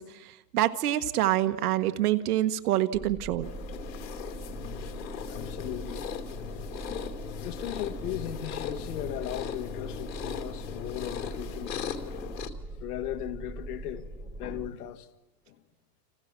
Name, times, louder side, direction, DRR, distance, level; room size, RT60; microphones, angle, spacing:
voice 1, 0.0-3.5, right 13 dB, 65° right, 1.6 m, -26 dB
sound 1, 2.9-14.7, right 2 dB, 10° left, 1.1 m, -42 dB
sound 2, 3.4-12.5, left 8 dB, 85° left, 2.7 m, -38 dB
voice 2, 5.3-6.1 7.4-11.9 12.8-15.1 15.5-15.6, left 12 dB, 65° left, 2.0 m, -37 dB
29.0 x 28.0 x 6.1 m
supercardioid pair, 150°, 49 cm